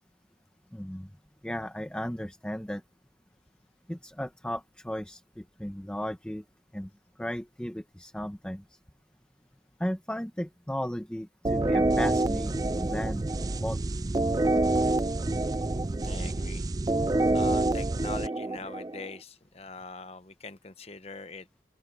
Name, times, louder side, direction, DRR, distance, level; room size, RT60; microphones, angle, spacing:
voice 1, 0.7-1.1 1.4-2.8 3.9-6.4 6.7-6.9 7.2-8.6 9.8-13.2 13.6-13.8, equal, 5° left, 0.8 m, -35 dB
sound 1, 11.4-19.1, right 2 dB, 20° right, 0.4 m, -27 dB
voice 2, 16.0-16.7 17.3-21.6, left 3 dB, 35° left, 1.0 m, -43 dB
open air
head